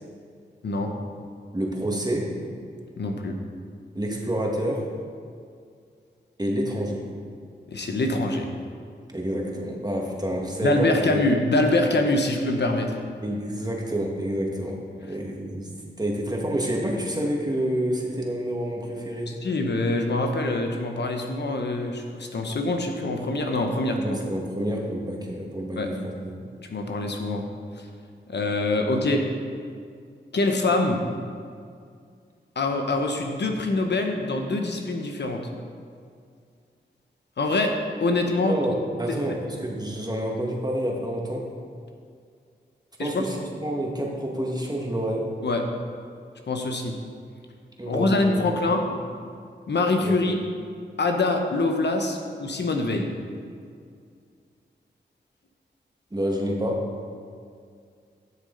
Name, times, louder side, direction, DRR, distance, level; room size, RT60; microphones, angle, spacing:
voice 1, 1.5-2.4 4.0-4.9 6.4-7.1 9.1-11.2 13.2-19.4 24.0-26.5 38.5-41.5 43.0-45.3 47.8-48.5 48.9-49.0 50.0-50.1 56.1-56.9, right 1 dB, 20° right, -1 dB, 1.8 m, -28 dB
voice 2, 3.0-3.4 7.7-8.5 10.6-13.0 19.3-24.2 25.8-25.9 26.7-27.4 27.8-27.9 28.3-29.2 30.3-31.0 32.6-35.4 37.4-37.7 38.0-38.6 39.1-39.4 43.0-43.2 45.4-45.6 46.5-47.0 47.9-48.8 49.7-50.4 51.0-53.1, left 2 dB, 65° left, 3 dB, 1.0 m, -24 dB
12.0 x 6.5 x 3.9 m, 2.2 s
cardioid pair, 50°, 19 cm